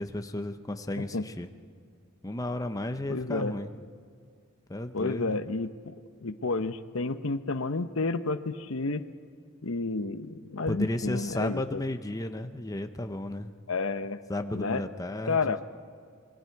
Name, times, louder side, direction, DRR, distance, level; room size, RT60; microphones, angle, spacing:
voice 1, 0.0-1.5 2.2-3.7 4.7-5.4 10.7-13.5 14.3-15.6, left 1 dB, 15° left, 7 dB, 0.8 m, -33 dB
voice 2, 3.1-3.5 4.9-5.9 6.2-9.0 9.6-11.8 13.7-14.2 14.5-14.8 15.3-15.6, left 3 dB, 75° left, 11 dB, 0.9 m, -30 dB
27.0 x 22.5 x 4.7 m, 2.1 s
head